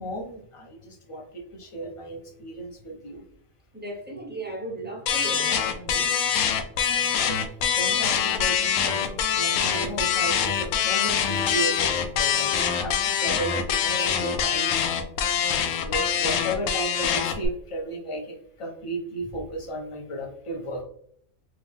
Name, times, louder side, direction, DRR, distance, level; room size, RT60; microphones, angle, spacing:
voice 1, 0.0-3.2 6.9-7.4 7.7-14.8 15.3-20.8, right 1 dB, 30° left, 1 dB, 0.6 m, -34 dB
voice 2, 3.7-6.1, right 2 dB, 15° right, -1 dB, 0.4 m, -36 dB
sound 1, 5.1-17.5, left 8 dB, 75° left, 1.0 m, -24 dB
3.6 x 2.7 x 3.4 m, 0.68 s
omnidirectional pair, 1.4 m